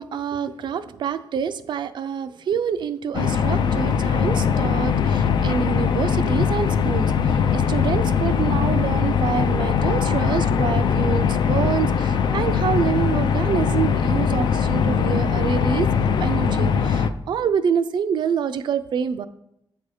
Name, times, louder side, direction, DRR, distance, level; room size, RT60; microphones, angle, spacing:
voice 1, 0.0-19.3, right 7 dB, 70° right, 12 dB, 0.4 m, -26 dB
sound 1, 3.1-17.1, left 7 dB, 65° left, 0.4 m, -21 dB
8.1 x 2.7 x 4.8 m, 0.80 s
cardioid pair, 90°, 8 cm